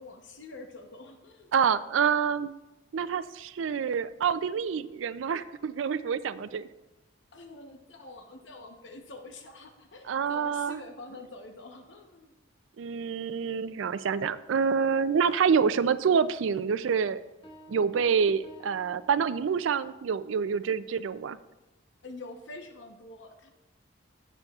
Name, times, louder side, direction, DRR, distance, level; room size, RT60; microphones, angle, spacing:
voice 1, 0.0-1.5 7.3-12.3 22.0-23.5, left 2 dB, 65° left, 5 dB, 0.9 m, -46 dB
voice 2, 1.5-2.5 2.9-6.7 10.1-10.8 12.8-17.2 17.7-21.4, right 6 dB, 80° right, 15 dB, 0.4 m, -27 dB
Piano, 17.4-19.8, right 2 dB, 25° left, 2.1 m, -52 dB
17.0 x 6.9 x 2.4 m, 1.0 s
head